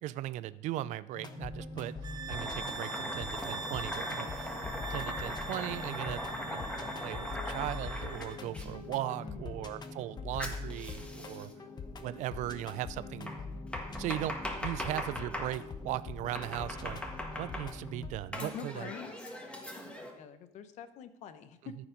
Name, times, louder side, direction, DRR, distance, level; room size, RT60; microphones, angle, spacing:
voice 1, 0.0-2.0 2.3-6.2 6.5-6.7 7.0-11.5 12.0-13.3 14.0-17.0 17.4-18.9, right 14 dB, 80° right, 17 dB, 0.4 m, -38 dB
sound 1, 1.2-18.1, left 3 dB, 35° left, 1.0 m, -43 dB
sound 2, 2.0-8.4, right 3 dB, 35° right, 0.7 m, -43 dB
Domestic sounds home sounds, 2.3-8.7 10.4-11.5 13.3-15.5 16.3-17.9 18.3-20.1, left 1 dB, 10° left, 1.6 m, -40 dB
voice 2, 9.2-9.7 18.4-19.3 19.8-21.8, left 7 dB, 70° left, 11 dB, 0.9 m, -46 dB
13.5 x 4.9 x 5.2 m, 0.88 s
cardioid pair, 110°, 12 cm